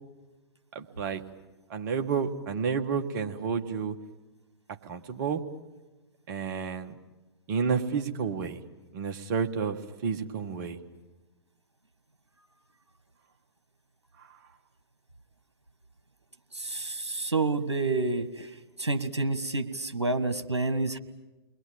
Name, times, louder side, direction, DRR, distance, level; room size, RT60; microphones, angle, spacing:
voice 1, 0.8-1.2 1.7-4.0 4.9-5.4 6.3-7.0 7.5-8.6 8.9-10.8, right 6 dB, 45° right, 6 dB, 1.8 m, -30 dB
voice 2, 16.5-18.5 18.8-21.0, right 3 dB, 80° right, 8 dB, 1.7 m, -29 dB
30.0 x 21.5 x 8.9 m, 1.1 s
figure-of-eight pair, 115°, 14 cm